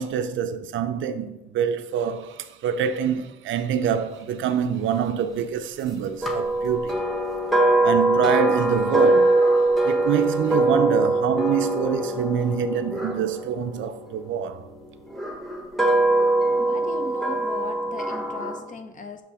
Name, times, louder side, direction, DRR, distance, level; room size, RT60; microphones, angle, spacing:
voice 1, 0.0-7.0 7.8-9.3 9.8-14.6, right 8 dB, 75° right, 0.6 m, -25 dB
sound 1, 6.2-14.4 15.1-18.6, right 2 dB, ahead, 1.1 m, -22 dB
voice 2, 16.6-19.2, left 3 dB, 40° left, 0.9 m, -37 dB
7.0 x 3.2 x 4.8 m
cardioid pair, 90°, 20 cm